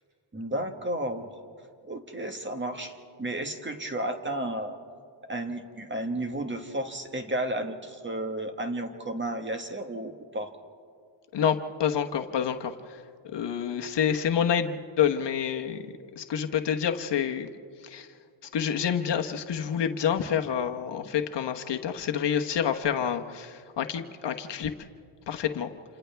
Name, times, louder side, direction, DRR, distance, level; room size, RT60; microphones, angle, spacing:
voice 1, 0.3-1.3 1.9-4.8 5.3-10.5, right 1 dB, 20° right, 5 dB, 1.6 m, -32 dB
voice 2, 11.3-13.0 13.3-15.8 16.2-17.5 17.8-18.1 18.5-24.7 25.3-25.7, left 8 dB, 55° left, 5 dB, 1.2 m, -28 dB
29.5 x 28.0 x 3.5 m, 2.2 s
cardioid pair, 105°, 50 cm